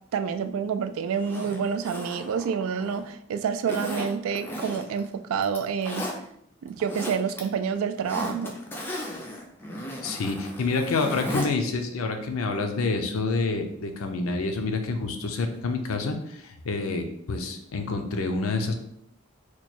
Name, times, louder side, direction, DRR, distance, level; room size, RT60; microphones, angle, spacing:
voice 1, 0.1-6.1 6.6-8.6, right 6 dB, 80° right, 10 dB, 0.3 m, -28 dB
Zipper (clothing), 1.1-3.1 3.7-5.1 5.4-6.2 6.7-7.4 7.7-11.5 11.8-11.9, equal, 10° left, 0.4 m, -35 dB
voice 2, 10.0-18.7, left 3 dB, 85° left, 6 dB, 0.5 m, -28 dB
3.0 x 2.3 x 4.2 m, 0.70 s
head